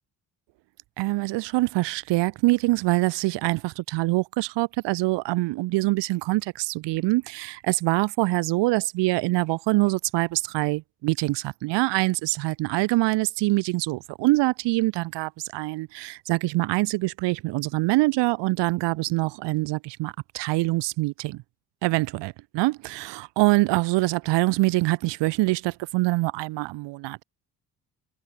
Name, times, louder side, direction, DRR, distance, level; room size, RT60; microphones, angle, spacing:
voice 1, 1.0-21.4 21.8-27.2, right 21 dB, 80° right, 2.2 m, -24 dB
hypercardioid pair, 55°, 42 cm